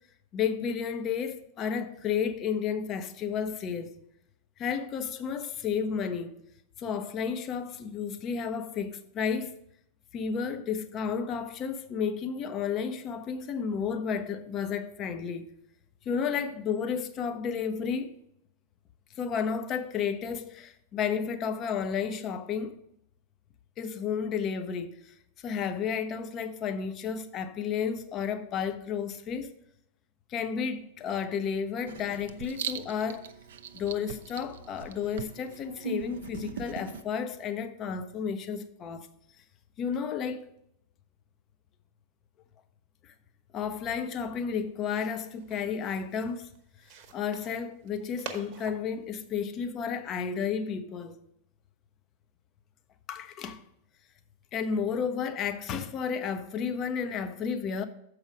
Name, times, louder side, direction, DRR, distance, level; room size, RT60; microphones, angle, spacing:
voice 1, 0.3-3.9 4.6-6.4 6.8-9.5 10.1-15.5 16.1-18.1 19.2-22.7 23.8-29.5 30.3-33.2 33.7-39.1 39.8-40.4 43.0-43.1 43.5-46.5 47.1-51.2 53.1-53.6 54.5-57.8, left 6 dB, 30° left, 0.7 m, -32 dB
Writing, 31.8-37.0, right 6 dB, 60° right, 0.5 m, -40 dB
sound 1, 44.6-50.1, right 6 dB, 40° right, 1.0 m, -48 dB
7.2 x 4.9 x 6.1 m
figure-of-eight pair, 90°, 0 cm